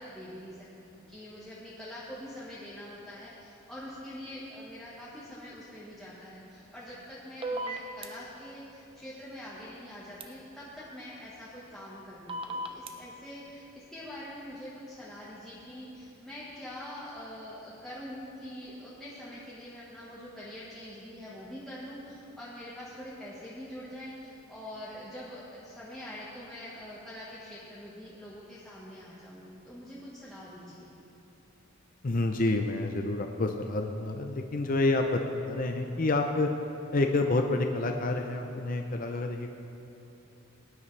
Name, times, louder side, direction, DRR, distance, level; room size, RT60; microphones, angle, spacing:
voice 1, 0.0-30.9, left 1 dB, ahead, -9 dB, 1.3 m, -44 dB
sound 1, 7.4-8.1 10.2-10.3 12.3-12.9, right 1 dB, 25° right, 0.6 m, -34 dB
voice 2, 32.0-35.2 35.5-36.5 36.9-39.5, left 2 dB, 40° left, 4 dB, 0.5 m, -28 dB
19.0 x 9.9 x 3.3 m, 2.9 s
head